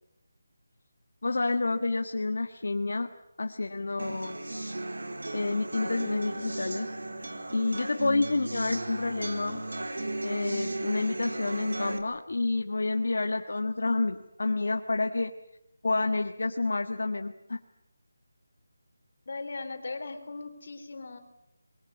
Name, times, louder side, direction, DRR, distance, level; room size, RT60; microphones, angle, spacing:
voice 1, 1.2-3.1 3.4-4.4 5.3-6.9 7.5-9.6 10.2-15.3 15.8-17.6, left 3 dB, 60° left, 5 dB, 1.6 m, -29 dB
sound 1, 4.0-12.0, right 2 dB, 90° right, 3.6 m, -35 dB
voice 2, 19.3-21.2, left 3 dB, 40° left, 6 dB, 3.8 m, -38 dB
25.5 x 22.5 x 8.6 m, 0.81 s
figure-of-eight pair, 180°, 0 cm